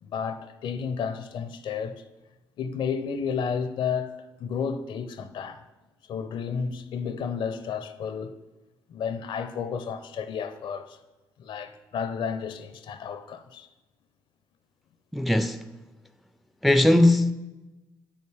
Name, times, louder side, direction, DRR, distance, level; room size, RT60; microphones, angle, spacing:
voice 1, 0.0-2.0 2.6-5.6 6.1-8.3 8.9-11.0 11.4-13.7, left 6 dB, 65° left, 0.5 m, -32 dB
voice 2, 15.1-15.6 16.6-17.3, left 1 dB, ahead, 0.3 m, -19 dB
5.6 x 4.3 x 4.8 m
supercardioid pair, 60°, 9 cm